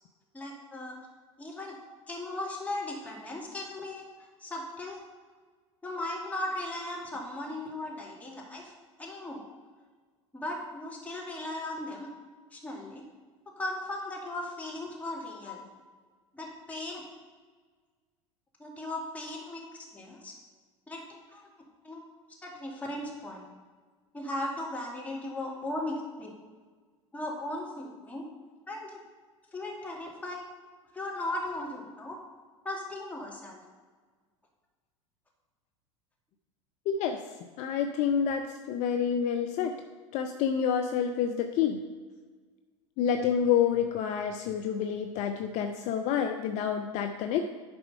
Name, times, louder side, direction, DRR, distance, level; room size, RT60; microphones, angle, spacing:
voice 1, 0.3-0.9 1.4-1.8 2.1-4.0 4.4-5.0 5.8-8.7 9.0-9.4 10.3-12.1 12.5-13.0 13.6-15.7 16.3-17.0 18.6-20.3 20.9-21.0 21.3-21.5 21.8-22.0 22.4-23.4 24.1-26.3 27.1-28.3 28.7-29.0 29.5-30.4 30.9-32.2 32.6-33.6, left 1 dB, 10° left, -3 dB, 2.5 m, -37 dB
voice 2, 36.9-37.2 37.6-39.7 40.1-41.8 43.0-47.4, left 8 dB, 45° left, 5 dB, 0.6 m, -28 dB
10.5 x 4.4 x 5.5 m, 1.5 s
figure-of-eight pair, 80°, 17 cm